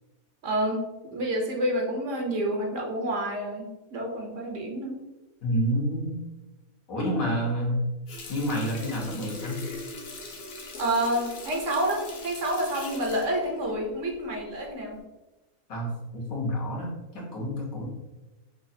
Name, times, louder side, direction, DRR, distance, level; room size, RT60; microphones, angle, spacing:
voice 1, 0.4-5.0 10.8-15.0, right 1 dB, 65° right, 0 dB, 1.0 m, -29 dB
voice 2, 5.4-6.2 6.9-7.8 8.3-9.6 15.7-17.8, equal, 75° left, -3 dB, 1.5 m, -29 dB
Water tap faucet, 8.1-14.4 14.8-15.0, left 3 dB, 55° left, 0.7 m, -41 dB
5.5 x 2.4 x 2.7 m, 1.1 s
omnidirectional pair, 1.5 m